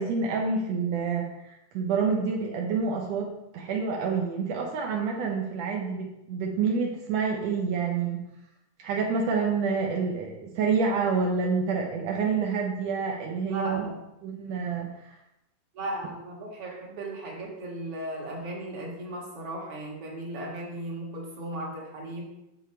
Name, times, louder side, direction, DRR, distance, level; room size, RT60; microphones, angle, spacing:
voice 1, 0.0-8.2 8.8-13.8 14.2-15.2, right 5 dB, 75° right, 0 dB, 1.6 m, -28 dB
voice 2, 13.5-13.9 15.7-22.3, right 1 dB, 50° right, -2 dB, 2.3 m, -36 dB
7.1 x 6.8 x 4.4 m, 0.89 s
omnidirectional pair, 4.0 m